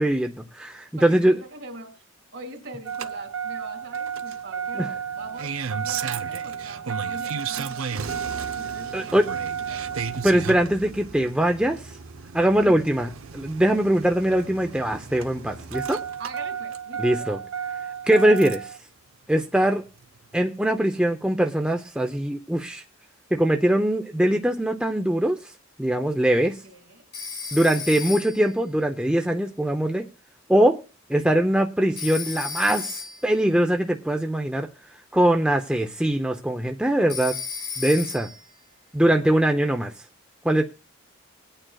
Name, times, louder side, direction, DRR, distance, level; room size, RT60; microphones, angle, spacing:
voice 1, 0.0-1.4 4.8-4.9 8.9-9.3 10.2-11.8 12.3-16.0 17.0-17.4 18.1-18.7 19.3-19.9 20.3-22.8 23.3-25.4 25.8-26.6 27.5-30.0 30.5-30.8 31.1-34.7 35.1-37.4 37.8-38.3 38.9-39.9 40.4-40.6, right 1 dB, 5° right, 3 dB, 0.5 m, -22 dB
voice 2, 1.0-2.0 2.3-10.0 12.6-13.0 16.2-17.4 26.6-27.0 27.5-28.2 31.2-31.3, right 2 dB, 60° right, 5 dB, 2.3 m, -42 dB
Engine starting, 2.9-18.8 20.0-20.1, right 7 dB, 80° right, 0.6 m, -32 dB
Telephone, 27.1-28.6 32.0-33.4 37.1-38.5, left 6 dB, 30° left, 1.4 m, -34 dB
22.0 x 8.9 x 2.3 m, 0.32 s
head